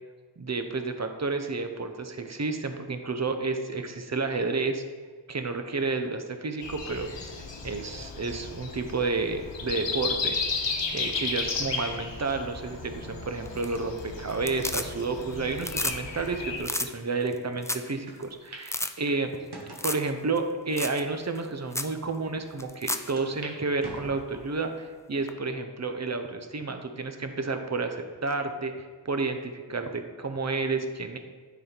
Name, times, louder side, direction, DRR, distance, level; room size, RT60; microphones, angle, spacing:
voice 1, 0.4-4.8 5.3-7.1 7.6-19.4 19.8-31.2, right 3 dB, 35° right, 7 dB, 0.7 m, -31 dB
Breathing, 6.6-16.6, left 4 dB, 75° left, 1.0 m, -34 dB
sound 1, 13.5-14.0 14.3-15.2 15.5-16.0 16.3-16.4 16.6-16.9 17.3-17.4 17.6-17.9 18.2-18.3 18.6-18.9 19.7-20.1 20.4-20.5 20.8-21.0 21.4-21.5 21.7-21.9 22.6-23.1 25.3-25.4, left 1 dB, 5° left, 0.3 m, -31 dB
sound 2, 18.1-18.2 18.5-18.7 19.1-19.9 20.6-20.7 21.4-21.5 21.8-21.9 23.2-23.5 23.8-24.6 25.1-25.6 26.1-26.2 27.3-27.8, right 1 dB, 60° right, 1.4 m, -44 dB
9.7 x 4.2 x 4.4 m, 1.5 s
wide cardioid pair, 80°, 44 cm